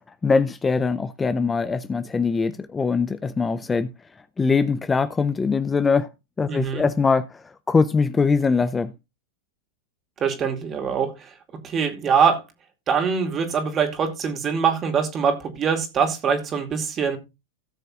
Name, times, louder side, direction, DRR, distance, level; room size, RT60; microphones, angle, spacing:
voice 1, 0.2-3.9 4.4-6.1 6.4-8.9, left 4 dB, 15° left, 0.5 m, -22 dB
voice 2, 6.5-6.8 10.2-11.3 11.6-12.4 12.9-17.2, right 6 dB, 30° right, 2.3 m, -23 dB
17.0 x 6.7 x 2.4 m
hypercardioid pair, 105°, 0 cm